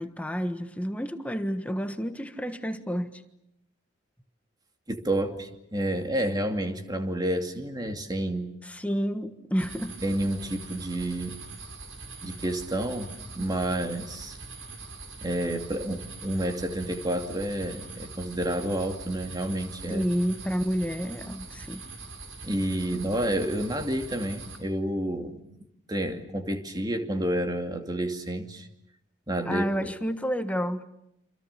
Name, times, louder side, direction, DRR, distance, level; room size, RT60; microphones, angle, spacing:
voice 1, 0.0-3.2 8.6-10.0 19.9-21.9 29.5-30.8, equal, 5° left, 1.4 m, -30 dB
voice 2, 4.9-8.5 10.0-11.4 12.2-14.4 15.2-20.0 22.4-25.4 25.9-28.7 29.3-29.9, right 1 dB, 20° right, 2.6 m, -30 dB
sound 1, 9.6-24.6, right 3 dB, 85° right, 5.9 m, -43 dB
29.0 x 27.0 x 6.8 m
head